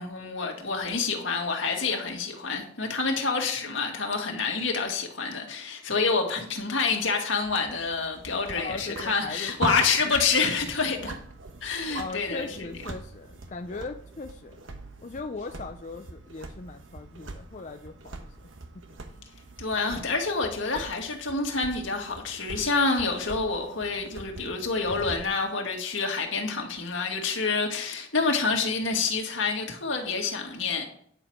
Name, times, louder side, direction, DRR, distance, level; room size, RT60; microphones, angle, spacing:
voice 1, 0.0-11.2 11.6-12.5 19.6-30.9, left 4 dB, 80° left, 1.8 m, -27 dB
sound 1, 7.4-25.3, right 2 dB, 90° right, 1.1 m, -41 dB
voice 2, 8.5-9.6 11.9-14.6 15.0-18.3 19.1-19.3, left 3 dB, 40° left, 0.5 m, -39 dB
9.9 x 6.9 x 4.5 m
head